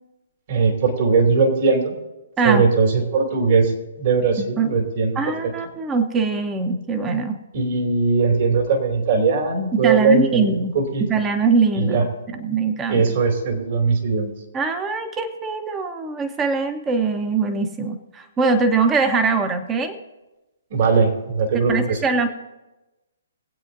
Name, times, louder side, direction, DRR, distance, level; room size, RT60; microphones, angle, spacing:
voice 1, 0.5-1.9 2.4-3.7 4.0-5.2 7.5-11.0 11.7-12.1 12.9-14.3 20.7-22.0, right 4 dB, 45° right, 3 dB, 2.6 m, -19 dB
voice 2, 4.4-4.7 5.2-7.4 9.7-10.7 11.0-12.1 12.4-13.1 14.5-20.0 21.7-22.3, right 4 dB, 15° right, 7 dB, 1.0 m, -22 dB
23.0 x 8.3 x 2.7 m, 1.0 s
hypercardioid pair, 145°, 0 cm